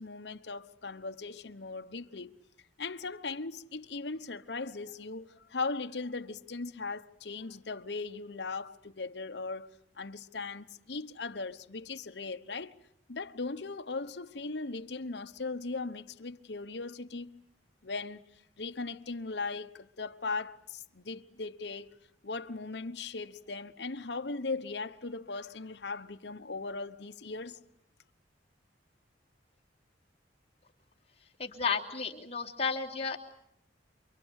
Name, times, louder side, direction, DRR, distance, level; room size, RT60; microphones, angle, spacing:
voice 1, 0.0-2.4 2.8-9.7 10.0-12.8 13.1-17.4 17.8-18.2 18.6-22.0 22.2-27.6, left 3 dB, 70° left, 1.1 m, -38 dB
voice 2, 31.4-33.2, left 5 dB, 35° left, 2.9 m, -32 dB
28.5 x 24.0 x 8.3 m
head